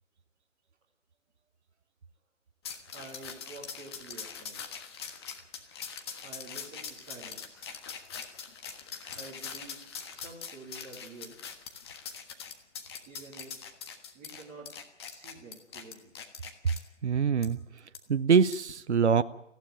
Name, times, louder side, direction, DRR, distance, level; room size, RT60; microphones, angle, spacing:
sound 1, 2.6-16.8 17.4-17.5 17.9-18.0 18.5-18.7, left 6 dB, 20° left, 1.4 m, -42 dB
voice 1, 2.9-4.8 6.2-7.7 9.1-9.8 10.1-11.4 13.1-13.7 14.1-14.7 15.0-16.1, right 3 dB, 15° right, -6 dB, 2.6 m, -49 dB
voice 2, 17.0-17.6 18.1-19.2, right 6 dB, 60° right, 12 dB, 0.8 m, -24 dB
19.0 x 15.5 x 9.3 m, 0.83 s
figure-of-eight pair, 150°, 39 cm